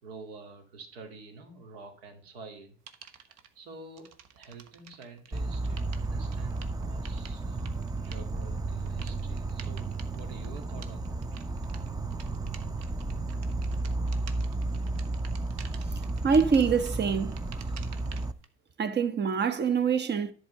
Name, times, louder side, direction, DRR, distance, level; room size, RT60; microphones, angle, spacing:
voice 1, 0.0-2.7 3.3-11.3, right 3 dB, 80° right, 2.3 m, -48 dB
sound 1, 2.9-3.5 3.9-18.5, right 8 dB, 60° right, 1.2 m, -51 dB
Insect, 5.3-18.3, right 2 dB, 15° right, 0.6 m, -33 dB
voice 2, 15.9-17.4 18.8-20.3, right 6 dB, 35° right, 1.1 m, -25 dB
11.0 x 4.4 x 6.9 m
hypercardioid pair, 70°, 30 cm